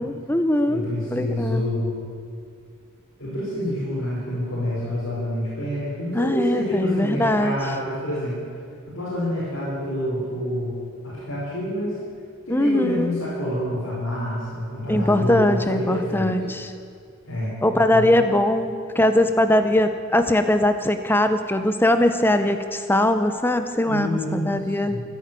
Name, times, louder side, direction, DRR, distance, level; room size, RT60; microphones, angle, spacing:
voice 1, 0.0-0.9 1.1-1.6 6.1-7.6 12.5-13.2 14.9-16.7 17.6-25.0, left 1 dB, 10° left, 8 dB, 0.7 m, -21 dB
voice 2, 0.7-2.0 3.2-8.4 8.9-10.7 11.0-11.9 12.5-16.3 17.3-18.1 23.8-25.0, equal, 75° left, -11 dB, 5.7 m, -27 dB
15.0 x 10.5 x 9.2 m, 2.3 s
head